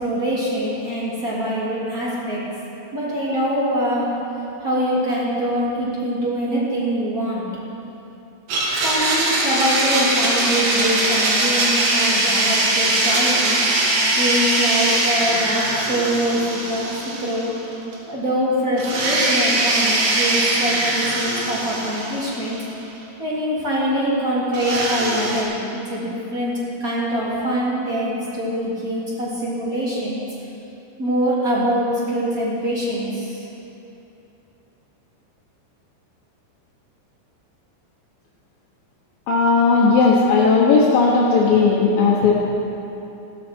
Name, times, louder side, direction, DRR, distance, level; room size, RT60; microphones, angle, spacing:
voice 1, 0.0-2.4 2.9-4.1 4.6-7.5 8.8-13.6 14.1-17.5 18.1-22.6 23.2-25.6 25.9-30.2 31.0-33.4, equal, 25° right, -7 dB, 2.6 m, -24 dB
Domestic sounds home sounds, 8.5-17.7 17.9-18.0 18.8-22.7 24.5-25.4, right 2 dB, 60° right, 3.6 m, -21 dB
voice 2, 39.3-42.4, left 4 dB, 65° left, -5 dB, 2.4 m, -16 dB
16.0 x 12.5 x 4.5 m, 2.9 s
omnidirectional pair, 5.2 m